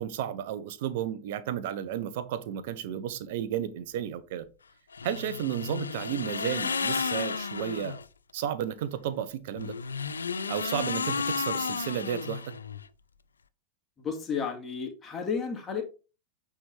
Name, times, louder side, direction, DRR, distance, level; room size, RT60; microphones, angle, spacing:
voice 1, 0.0-4.5 5.0-8.0 8.3-9.8 10.5-12.5, right 10 dB, 50° right, 0.7 m, -33 dB
sound 1, 4.9-8.1 9.5-12.9, left 5 dB, 75° left, 0.4 m, -32 dB
voice 2, 14.0-15.8, left 6 dB, 20° left, 2.0 m, -32 dB
8.7 x 3.6 x 3.4 m
figure-of-eight pair, 90°, 0 cm